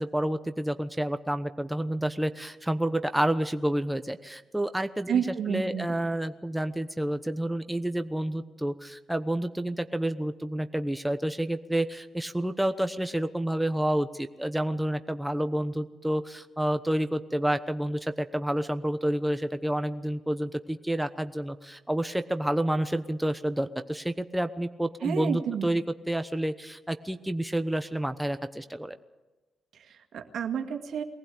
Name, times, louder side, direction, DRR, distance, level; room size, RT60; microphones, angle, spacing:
voice 1, 0.0-29.0, right 1 dB, 5° right, 9 dB, 1.0 m, -29 dB
voice 2, 5.1-6.0 25.0-25.7 29.7-31.0, right 8 dB, 75° right, 5 dB, 2.0 m, -30 dB
22.0 x 15.5 x 8.5 m, 1.1 s
cardioid pair, 65°, 0 cm